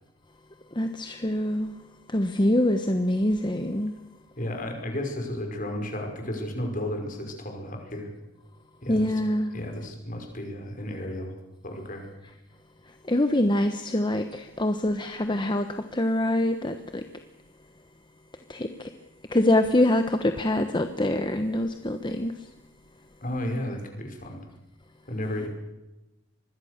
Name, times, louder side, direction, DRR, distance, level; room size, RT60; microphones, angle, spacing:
voice 1, 0.7-1.7 2.1-3.9 8.9-9.5 13.1-17.0 18.5-18.9 19.3-22.3, left 1 dB, 25° left, 7 dB, 1.1 m, -25 dB
voice 2, 4.4-8.1 8.8-9.2 9.5-11.4 11.6-12.1 23.2-24.4 25.1-25.5, left 1 dB, 45° left, 4 dB, 5.5 m, -33 dB
25.5 x 21.5 x 6.7 m, 1.0 s
head